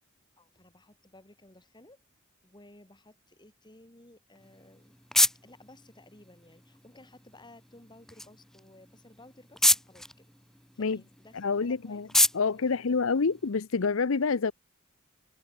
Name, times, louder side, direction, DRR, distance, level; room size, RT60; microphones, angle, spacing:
voice 1, 0.4-2.0 2.4-4.9 5.4-10.3 10.7-12.0 12.3-13.0, left 1 dB, 20° left, 6.2 m, -56 dB
sound 1, 4.4-13.8, left 1 dB, ahead, 0.6 m, -31 dB
voice 2, 11.3-12.1 12.3-14.5, left 4 dB, 70° left, 0.7 m, -27 dB
head